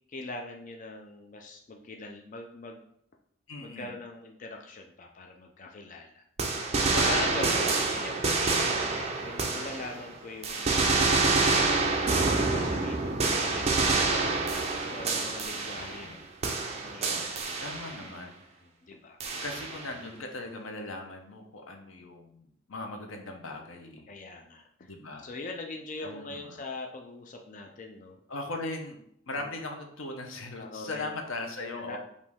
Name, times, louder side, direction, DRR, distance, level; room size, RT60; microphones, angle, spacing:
voice 1, 0.1-2.8 3.6-6.2 6.8-10.7 11.4-12.0 12.5-14.6 14.9-16.3 16.8-17.6 18.8-19.2 24.1-24.9 25.2-28.2 29.4-29.5 30.6-31.1 31.8-32.0, left 2 dB, 40° left, 3 dB, 0.4 m, -42 dB
voice 2, 3.5-3.9 6.9-7.5 15.8-16.2 17.3-18.4 19.4-24.1 24.8-25.3 26.0-26.6 28.3-29.0 29.3-32.0, left 2 dB, 90° left, 4 dB, 0.7 m, -39 dB
sound 1, 6.4-10.1 10.4-16.2 16.4-18.1 19.2-19.9, right 3 dB, 30° right, 0.5 m, -27 dB
5.1 x 2.7 x 3.5 m, 0.69 s
head